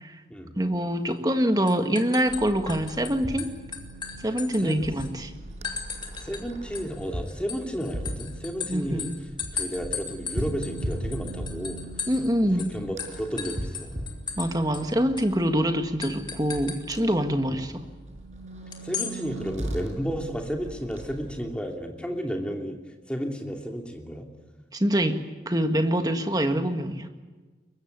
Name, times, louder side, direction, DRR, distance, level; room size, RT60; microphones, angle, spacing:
voice 1, 0.5-3.5 4.2-5.3 8.7-9.2 12.1-12.7 14.4-17.7 24.7-25.2 25.4-27.1, equal, 20° right, 6 dB, 1.7 m, -25 dB
sound 1, 1.1-1.4 1.7-3.1 3.4-5.1 5.6-6.4 6.7-12.3 12.6-12.7 13.0-14.5 14.7-14.8 15.2-15.3 16.0-16.8 18.7-19.1, left 6 dB, 25° left, 2.9 m, -36 dB
sound 2, 2.3-21.6, right 1 dB, 40° right, 6.0 m, -38 dB
voice 2, 4.6-4.9 6.2-9.1 9.5-11.9 12.5-14.0 17.5-17.7 18.8-22.8 23.1-24.3, equal, 5° left, 2 dB, 2.8 m, -32 dB
22.5 x 22.5 x 9.7 m, 1.3 s
head